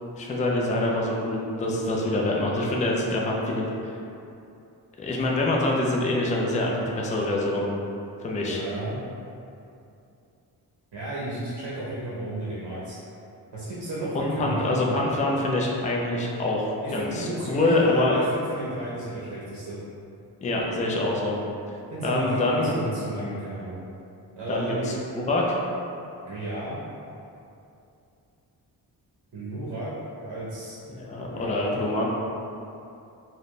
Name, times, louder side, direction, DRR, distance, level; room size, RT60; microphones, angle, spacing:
voice 1, 0.2-3.9 5.0-7.6 8.2-8.6 14.1-18.2 20.4-21.4 22.0-22.8 24.5-25.6 30.9-32.1, left 2 dB, 20° left, -2 dB, 0.3 m, -25 dB
voice 2, 8.4-9.0 10.9-13.0 13.5-14.9 16.8-19.8 21.9-23.8 24.4-25.0 26.2-26.8 29.3-29.9 30.2-30.8 31.3-31.8, right 1 dB, 75° right, -7 dB, 0.8 m, -33 dB
4.0 x 2.1 x 3.1 m, 2.6 s
wide cardioid pair, 150°, 40 cm